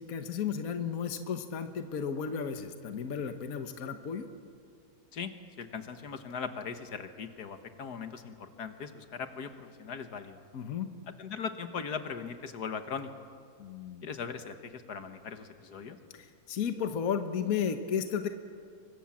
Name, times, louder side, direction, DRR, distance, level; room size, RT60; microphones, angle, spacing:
voice 1, 0.0-4.3 10.5-10.9 13.6-14.1 16.1-18.3, left 7 dB, 60° left, 8 dB, 1.6 m, -33 dB
voice 2, 5.6-10.4 11.2-13.1 14.0-16.0, left 6 dB, 75° left, 8 dB, 1.9 m, -39 dB
27.5 x 24.0 x 7.3 m, 2.2 s
omnidirectional pair, 1.7 m